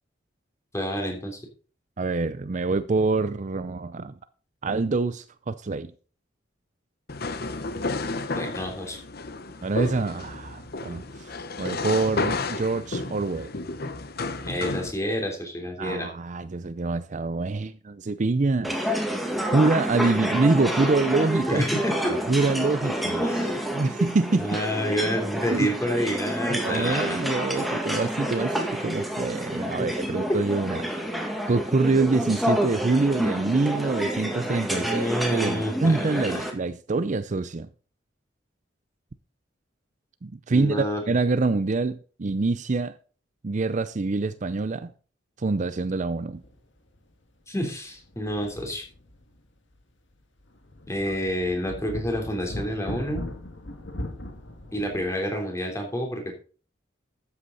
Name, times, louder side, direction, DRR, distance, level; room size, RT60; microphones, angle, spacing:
voice 1, 0.7-1.4 8.4-9.0 14.4-16.1 20.0-20.1 21.5-22.2 23.2-23.6 24.4-27.2 29.8-29.9 30.3-30.4 34.8-36.4 40.5-41.0 47.5-48.8 50.9-53.2 54.7-56.3, equal, 15° left, 3.4 m, -28 dB
voice 2, 2.0-4.1 4.6-5.9 9.6-13.5 15.8-18.8 19.5-21.6 22.3-23.2 23.7-24.6 25.5-25.7 26.5-30.8 31.5-35.1 35.3-37.7 40.2-42.9 43.4-44.9 45.4-46.4 51.1-51.2, right 3 dB, 40° right, 0.5 m, -25 dB
sound 1, 7.1-14.9, left 3 dB, 55° left, 1.1 m, -32 dB
sound 2, 18.6-36.5, equal, ahead, 2.0 m, -29 dB
sound 3, 46.4-46.6 46.9-47.0 47.9-49.4 49.7-49.8 50.4-55.1, left 1 dB, 85° left, 2.1 m, -38 dB
13.0 x 8.4 x 4.0 m
head